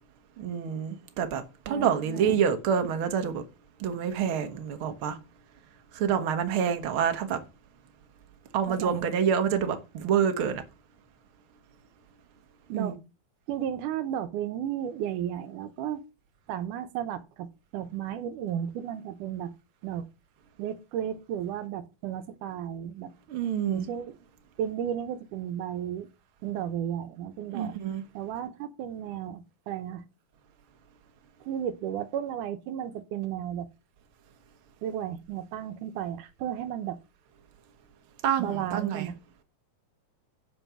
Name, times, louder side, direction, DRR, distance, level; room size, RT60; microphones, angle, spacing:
voice 1, 0.4-3.4 3.8-5.2 5.9-7.4 8.5-10.6 12.7-13.0 23.3-23.9 27.5-28.0 38.2-39.1, right 8 dB, 50° right, 2.0 m, -27 dB
voice 2, 1.7-2.4 8.8-9.0 12.7-13.0 13.5-16.0 16.5-19.5 19.8-20.1 20.6-23.1 23.7-24.1 24.6-26.1 26.4-27.8 28.1-30.0 31.5-33.7 34.8-37.0 38.4-39.2, right 10 dB, 85° right, 2.4 m, -34 dB
11.0 x 5.5 x 6.1 m
omnidirectional pair, 3.5 m